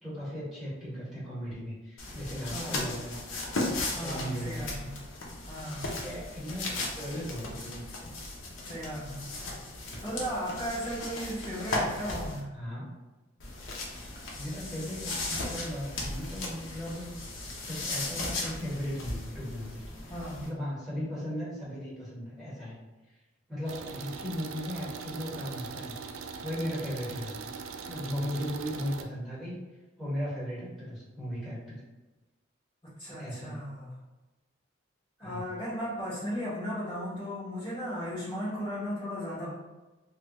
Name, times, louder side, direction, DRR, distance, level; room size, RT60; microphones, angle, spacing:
voice 1, 0.0-3.2 3.9-4.8 6.0-7.8 12.5-12.9 14.4-17.2 17.6-22.8 23.5-27.5 27.8-29.6 30.0-31.8 33.2-33.6 35.2-35.5, equal, ahead, -9 dB, 1.3 m, -37 dB
sound 1, 2.0-12.4 13.4-20.5, left 2 dB, 75° left, 0.7 m, -36 dB
voice 2, 2.5-2.8 3.9-5.0 5.4-5.9 8.6-9.3 10.0-12.5 20.1-20.5 32.8-33.9 35.2-39.5, equal, 25° left, -9 dB, 1.1 m, -36 dB
sound 2, 23.7-29.0, right 5 dB, 80° right, 0.3 m, -41 dB
3.3 x 2.3 x 3.0 m, 1.1 s
head